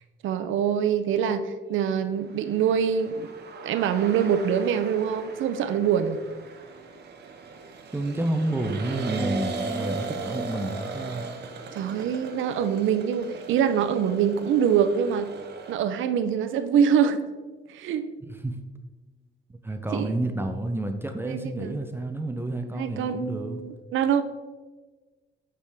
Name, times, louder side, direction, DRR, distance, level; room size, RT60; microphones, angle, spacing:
voice 1, 0.2-3.3 3.6-6.2 11.7-15.3 15.7-17.3 17.7-18.1 19.9-20.1 21.3-21.8 22.7-24.2, right 8 dB, 80° right, 10 dB, 0.6 m, -24 dB
sound 1, 2.3-15.7, right 4 dB, 55° right, 0.9 m, -38 dB
voice 2, 7.9-11.4 18.2-18.6 19.5-23.6, right 1 dB, 10° right, 5 dB, 0.6 m, -30 dB
Harp, 9.2-13.3 13.6-14.1 14.6-15.0, right 1 dB, 5° left, 2.2 m, -41 dB
8.2 x 4.8 x 3.5 m, 1.3 s
cardioid pair, 90°, 20 cm